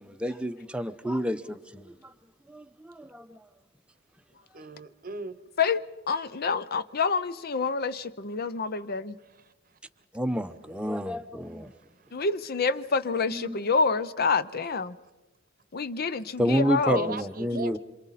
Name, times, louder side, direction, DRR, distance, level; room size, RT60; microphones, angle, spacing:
voice 1, 0.0-1.9 2.5-3.4 10.1-11.7 13.3-13.6 16.4-17.8, equal, 5° right, 0.7 m, -29 dB
voice 2, 4.5-5.5 9.3-9.5 11.4-12.3 16.9-17.8, right 2 dB, 45° right, 0.9 m, -39 dB
voice 3, 5.6-9.2 12.1-15.0 15.7-17.1, left 4 dB, 50° left, 0.6 m, -27 dB
27.0 x 27.0 x 4.2 m
head